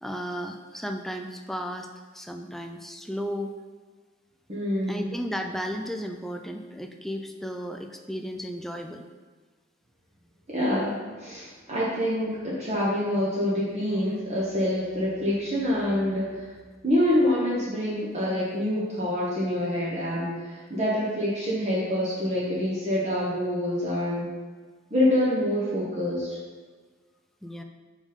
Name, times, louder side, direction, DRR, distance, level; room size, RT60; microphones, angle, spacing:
voice 1, 0.0-1.9 2.1-3.5 4.9-9.0 27.4-27.6, equal, ahead, 5 dB, 0.4 m, -34 dB
voice 2, 4.5-5.1 10.5-16.5 16.8-24.3 24.9-26.4, left 1 dB, 30° right, -7 dB, 1.2 m, -26 dB
5.2 x 5.1 x 5.2 m, 1.5 s
head